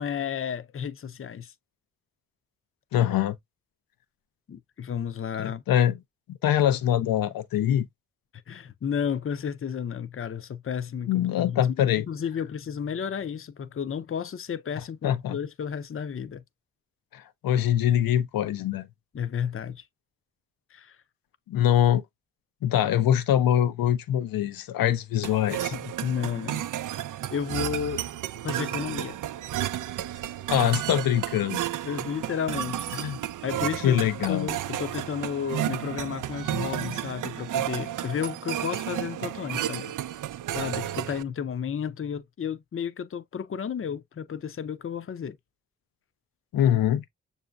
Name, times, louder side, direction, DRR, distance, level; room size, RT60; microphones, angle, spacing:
voice 1, 0.0-1.5 4.5-5.6 8.5-16.4 19.1-19.8 20.7-21.0 25.7-26.6 27.3-28.0 28.4-29.2 31.8-32.9 33.4-34.0 34.3-39.9 40.5-45.4, left 7 dB, 40° left, 0.6 m, -32 dB
voice 2, 2.9-3.4 5.4-6.0 6.3-7.9 11.1-12.0 15.0-15.4 17.1-18.9 21.5-22.0 22.6-25.7 30.5-31.6 32.9-33.2 33.8-34.5 46.5-47.0, left 11 dB, 80° left, 0.6 m, -23 dB
sound 1, 25.2-41.2, right 12 dB, 65° right, 0.5 m, -32 dB
6.7 x 2.7 x 2.3 m
supercardioid pair, 40°, 34 cm